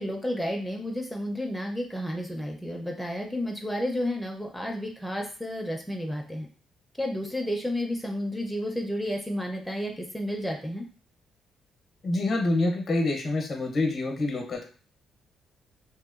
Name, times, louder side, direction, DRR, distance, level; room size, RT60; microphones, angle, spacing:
voice 1, 0.0-6.5 7.0-10.8, equal, ahead, 0 dB, 0.5 m, -31 dB
voice 2, 12.0-14.6, left 2 dB, 50° left, 3 dB, 0.7 m, -26 dB
2.8 x 2.1 x 2.4 m, 0.40 s
cardioid pair, 90°, 0 cm